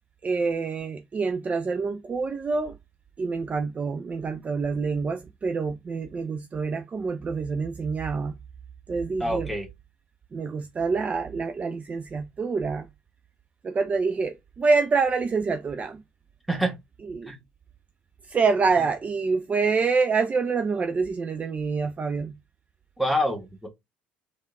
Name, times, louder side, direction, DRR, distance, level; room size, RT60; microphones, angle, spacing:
voice 1, 0.2-2.8 3.2-8.3 8.9-9.5 10.3-12.9 13.6-16.0 17.1-17.3 18.3-22.3, right 4 dB, 25° right, 0.4 m, -26 dB
voice 2, 9.2-9.7 16.5-16.8 17.3-17.4 23.0-23.7, equal, ahead, 1.5 m, -26 dB
3.5 x 3.5 x 2.4 m
figure-of-eight pair, 60°, 5 cm